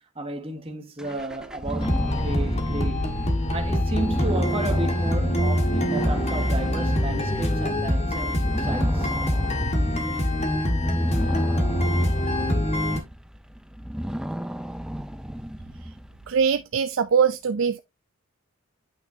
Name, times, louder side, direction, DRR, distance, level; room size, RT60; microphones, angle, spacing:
voice 1, 0.1-3.2 3.5-9.1 10.4-10.6, right 2 dB, 25° right, 1.4 m, -33 dB
sound 1, 1.0-16.4, equal, 5° right, 0.4 m, -34 dB
sound 2, 1.8-13.0, left 1 dB, 30° left, 1.7 m, -24 dB
voice 2, 16.3-17.8, right 6 dB, 65° right, 0.4 m, -22 dB
8.9 x 5.7 x 2.7 m
head